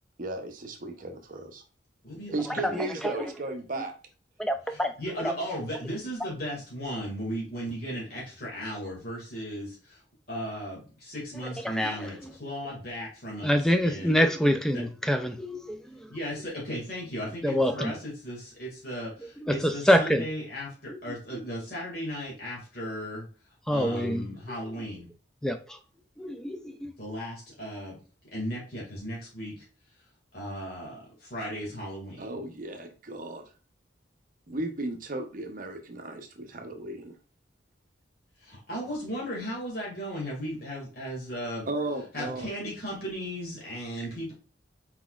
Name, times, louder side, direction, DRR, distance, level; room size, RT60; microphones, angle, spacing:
voice 1, 0.2-1.6 2.3-3.9 32.2-33.4 34.5-37.1 41.6-42.5, right 2 dB, 45° right, 0.7 m, -35 dB
voice 2, 2.0-2.4 4.7-10.0 10.3-14.2 14.7-14.8 16.1-23.3 23.7-25.1 27.0-28.0 28.3-29.6 30.3-32.3 38.4-41.7 42.1-44.3, equal, 55° left, 2.1 m, -36 dB
voice 3, 2.6-3.1 4.4-4.9 5.2-5.3 11.6-12.3 13.4-16.1 17.4-17.9 19.4-20.3 20.9-21.2 23.7-24.6 25.4-25.8 26.2-26.9, equal, 5° left, 0.3 m, -26 dB
4.4 x 4.1 x 2.4 m
head